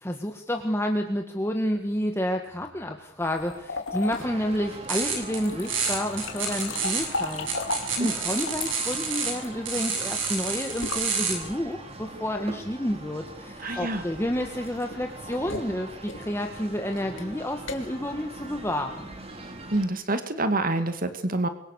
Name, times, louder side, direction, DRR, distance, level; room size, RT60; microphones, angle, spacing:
voice 1, 0.0-19.1, equal, 15° left, 3 dB, 2.0 m, -30 dB
sound 1, 3.2-11.8 13.6-19.3, left 3 dB, 80° left, 3.0 m, -37 dB
sound 2, 4.2-19.9, right 2 dB, 30° right, 3.6 m, -42 dB
sound 3, 4.9-5.4 5.7-9.3 9.7-11.3, right 5 dB, 75° right, 7.4 m, -29 dB
voice 2, 13.6-14.0 19.7-21.5, right 2 dB, 45° right, 9 dB, 2.1 m, -27 dB
28.0 x 24.0 x 6.7 m, 0.70 s
head